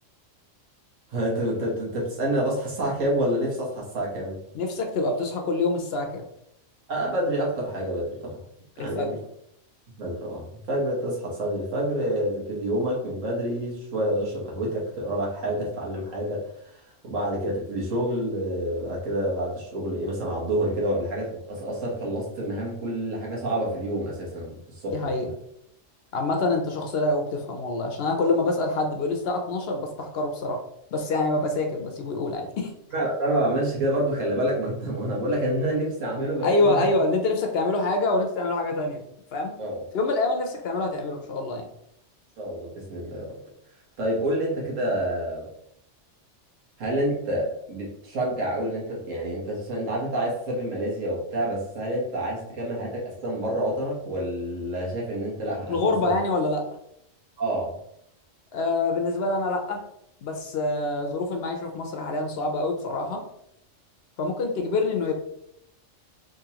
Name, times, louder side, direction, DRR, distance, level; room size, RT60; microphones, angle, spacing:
voice 1, 1.1-4.4 6.9-8.4 8.8-9.2 10.0-16.8 17.0-25.1 32.9-36.9 39.6-39.8 42.4-43.4 44.0-45.5 46.8-56.2 57.4-57.8, right 1 dB, 85° right, -3 dB, 1.6 m, -28 dB
voice 2, 4.5-6.2 8.8-9.1 24.9-25.3 26.1-30.6 30.9-32.7 36.4-39.0 39.3-39.5 39.9-41.7 55.7-56.7 58.5-59.8 60.2-63.2 64.2-65.1, left 2 dB, 60° left, 3 dB, 0.7 m, -26 dB
3.6 x 3.0 x 2.8 m, 0.75 s
omnidirectional pair, 1.3 m